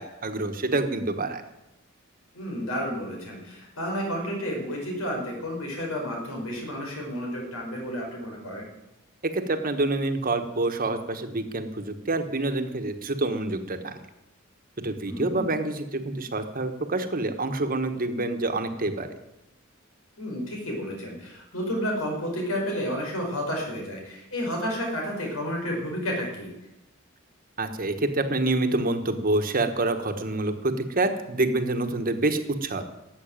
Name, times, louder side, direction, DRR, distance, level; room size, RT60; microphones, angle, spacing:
voice 1, 0.0-1.4 9.3-14.0 14.8-19.1 27.6-32.8, right 2 dB, 40° right, 7 dB, 1.3 m, -27 dB
voice 2, 2.3-8.7 15.1-15.4 20.2-26.5, equal, 85° left, 0 dB, 5.3 m, -31 dB
14.0 x 8.0 x 9.0 m, 0.93 s
head